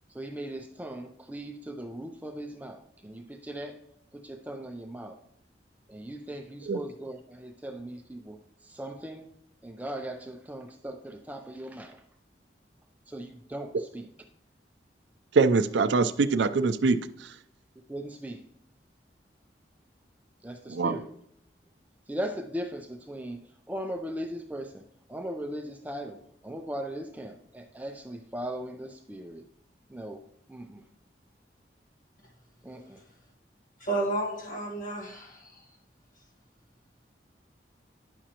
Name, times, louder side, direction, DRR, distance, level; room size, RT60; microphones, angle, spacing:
voice 1, 0.1-3.8 4.1-5.2 5.9-9.3 9.6-12.0 13.1-14.1 17.9-18.4 20.4-21.1 22.1-23.4 23.7-29.4 29.9-30.2 30.5-30.8 32.6-33.0, right 1 dB, 10° right, 4 dB, 0.4 m, -38 dB
voice 2, 15.3-17.0 20.7-21.0, right 4 dB, 80° right, 12 dB, 0.4 m, -23 dB
voice 3, 33.8-35.6, right 2 dB, 45° left, 1 dB, 1.4 m, -32 dB
9.9 x 6.2 x 2.9 m, 0.74 s
head